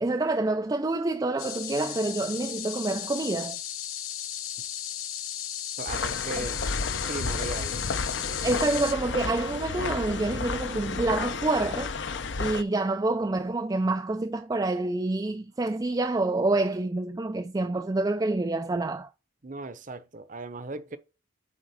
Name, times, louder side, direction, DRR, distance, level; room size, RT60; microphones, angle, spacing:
voice 1, 0.0-3.6 8.4-11.9 12.4-19.1, right 2 dB, 20° right, 0.3 m, -27 dB
sound 1, 1.4-8.9, left 11 dB, 80° left, 0.9 m, -35 dB
voice 2, 5.8-6.6 7.1-7.8 19.4-21.0, right 2 dB, 40° right, 0.8 m, -37 dB
sound 2, 5.9-12.6, left 4 dB, 60° left, 0.7 m, -32 dB
8.6 x 3.6 x 5.0 m
head